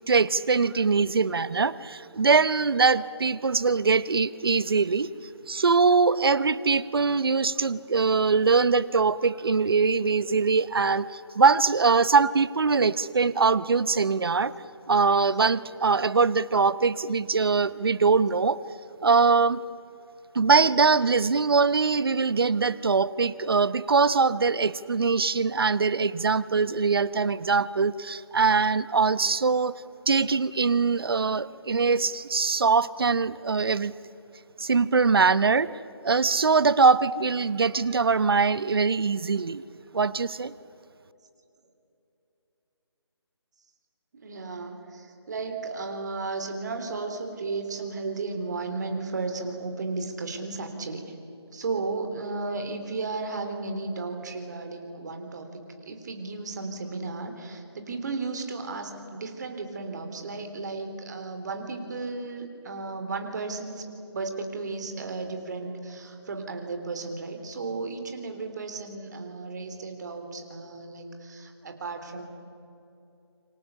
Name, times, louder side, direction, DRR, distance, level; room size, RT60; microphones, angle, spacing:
voice 1, 0.1-5.1 5.5-14.5 14.9-18.6 19.0-19.6 20.3-33.9 34.6-35.7 36.0-39.6 39.9-40.5, right 4 dB, 55° right, 17 dB, 0.9 m, -22 dB
voice 2, 44.1-51.0 51.5-55.6 55.9-63.8 64.1-72.2, right 3 dB, 40° right, 5 dB, 3.5 m, -34 dB
28.0 x 25.0 x 7.0 m, 2.8 s
figure-of-eight pair, 155°, 14 cm